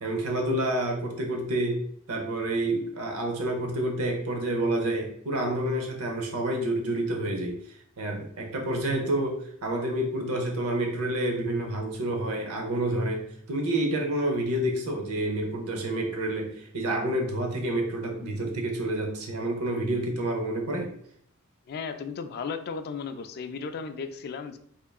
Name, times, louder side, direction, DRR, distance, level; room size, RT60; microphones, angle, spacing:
voice 1, 0.0-1.8 2.1-20.9, right 1 dB, 85° right, 2 dB, 0.7 m, -29 dB
voice 2, 21.7-24.6, left 5 dB, 45° left, 9 dB, 0.3 m, -35 dB
3.6 x 3.3 x 2.3 m, 0.65 s
head